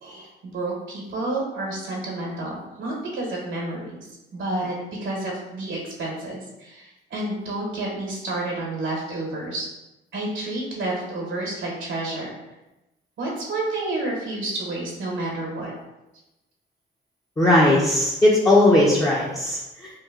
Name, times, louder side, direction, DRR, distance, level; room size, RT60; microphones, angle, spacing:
voice 1, 0.0-9.7 10.1-12.3 13.2-15.7, right 2 dB, 75° right, -2 dB, 1.0 m, -30 dB
voice 2, 17.4-19.9, left 1 dB, 15° left, -5 dB, 0.5 m, -18 dB
3.0 x 2.2 x 3.5 m, 0.98 s
cardioid pair, 90°, 20 cm